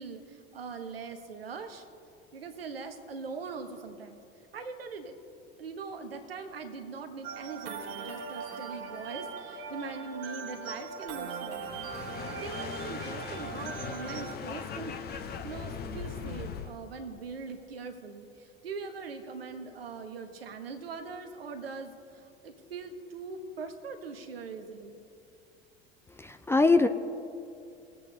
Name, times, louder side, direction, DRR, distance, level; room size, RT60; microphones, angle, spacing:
voice 1, 0.0-1.8 2.3-4.2 4.5-5.1 5.6-11.7 12.3-25.0, right 4 dB, 75° right, 5 dB, 1.1 m, -41 dB
sound 1, 7.2-14.4, right 5 dB, 55° right, 1.3 m, -40 dB
sound 2, 11.6-16.7, left 6 dB, 35° left, 1.0 m, -39 dB
voice 2, 26.2-26.9, left 3 dB, 10° left, 9 dB, 0.4 m, -22 dB
21.0 x 8.2 x 2.8 m, 2.5 s
figure-of-eight pair, 70°, 29 cm